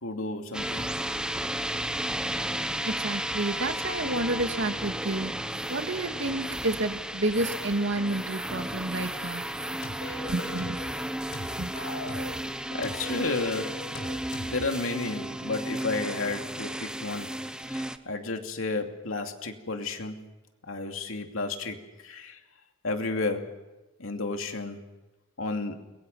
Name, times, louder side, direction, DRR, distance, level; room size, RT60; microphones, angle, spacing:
voice 1, 0.0-0.9 12.7-13.8 14.4-17.3 17.7-20.2 20.7-22.4 22.8-23.6 24.0-24.8 25.4-25.8, left 3 dB, 85° left, 4 dB, 2.7 m, -32 dB
sound 1, 0.5-18.0, right 1 dB, 5° right, 1.0 m, -33 dB
voice 2, 2.9-9.4 10.3-10.8 11.6-11.7, right 2 dB, 60° right, 7 dB, 1.9 m, -30 dB
sound 2, 9.8-10.9 11.3-12.4 12.8-14.6, left 2 dB, 65° left, 4.9 m, -39 dB
30.0 x 22.5 x 5.6 m, 1.1 s
head